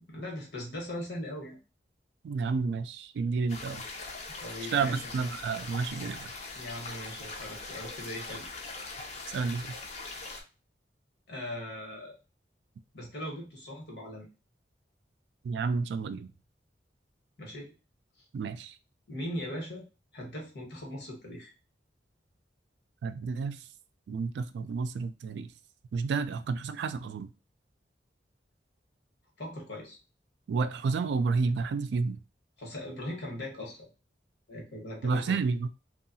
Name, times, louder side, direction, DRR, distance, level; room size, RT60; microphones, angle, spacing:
voice 1, 0.1-1.6 4.4-5.0 6.5-8.4 11.3-12.1 12.9-14.3 17.4-17.7 19.1-19.8 20.1-21.5 29.4-30.0 32.6-33.9 34.5-35.4, left 1 dB, 70° left, 0 dB, 1.2 m, -39 dB
voice 2, 2.2-3.8 4.7-6.3 9.3-9.7 15.4-16.3 18.3-18.8 23.0-23.6 24.1-25.5 25.9-27.3 30.5-32.2 35.0-35.7, right 4 dB, 75° right, 11 dB, 0.3 m, -30 dB
sound 1, 3.5-10.4, left 3 dB, 40° left, 0.5 m, -41 dB
2.7 x 2.3 x 2.6 m, 0.31 s
head